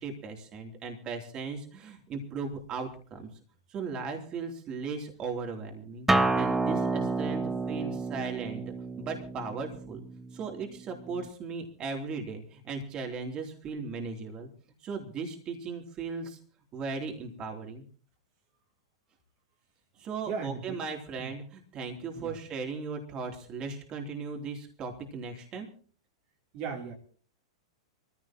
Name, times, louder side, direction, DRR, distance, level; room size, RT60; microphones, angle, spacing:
voice 1, 0.0-3.3 3.7-10.0 10.3-14.5 14.8-16.4 16.7-17.8 20.0-25.7, right 4 dB, 35° right, 3 dB, 3.3 m, -37 dB
Acoustic guitar, 6.1-11.3, right 2 dB, 10° right, 1.0 m, -30 dB
voice 2, 20.2-20.8 21.2-21.3 22.1-22.4 26.5-26.9, right 6 dB, 50° right, 1 dB, 3.3 m, -37 dB
24.0 x 15.5 x 3.0 m, 0.42 s
hypercardioid pair, 105°, 3 cm